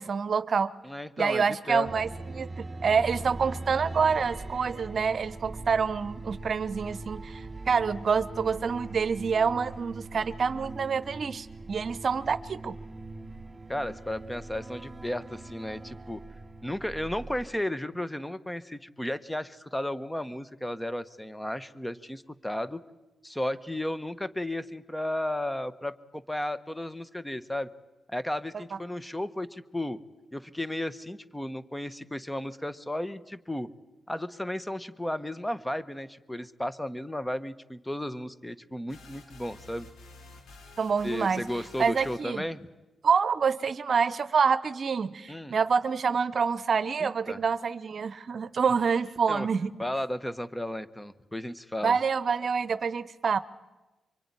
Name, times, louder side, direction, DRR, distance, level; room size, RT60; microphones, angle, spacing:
voice 1, 0.0-0.7 1.2-12.8 40.8-41.5 41.8-42.5 43.0-49.7 51.8-53.4, right 6 dB, 55° right, 16 dB, 0.9 m, -27 dB
voice 2, 0.8-1.9 13.7-16.2 16.6-22.8 23.2-27.7 28.1-30.0 30.3-33.7 34.1-39.9 41.0-42.7 45.3-45.6 47.0-47.4 49.3-49.5 49.8-52.0, left 1 dB, 10° left, 14 dB, 1.4 m, -34 dB
sound 1, 1.8-17.4, right 2 dB, 25° right, 2.7 m, -41 dB
sound 2, 38.9-42.4, left 3 dB, 80° left, 4.9 m, -51 dB
24.0 x 24.0 x 9.8 m, 1.1 s
cardioid pair, 65°, 0 cm